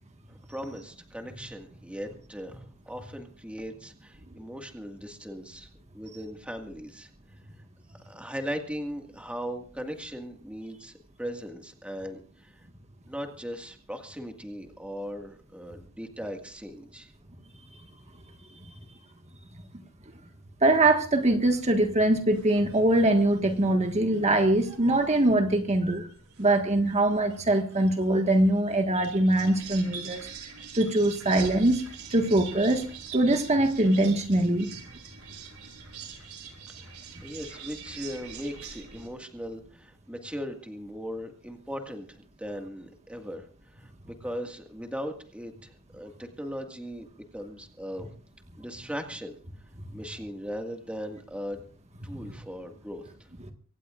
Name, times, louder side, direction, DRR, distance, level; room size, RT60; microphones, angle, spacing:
voice 1, 0.3-5.7 5.9-7.1 8.0-12.7 13.1-17.1 36.7-36.9 37.2-43.5 43.7-47.1 47.3-48.1 48.6-49.4 49.9-51.6 52.0-53.1, equal, 5° right, 4 dB, 1.8 m, -38 dB
voice 2, 20.6-26.1 26.4-30.3 30.7-31.8 32.1-32.8 33.1-34.7, right 1 dB, 30° right, 4 dB, 1.6 m, -23 dB
sound 1, 21.2-39.1, right 7 dB, 85° right, 4.8 m, -45 dB
24.5 x 18.0 x 2.5 m, 0.40 s
head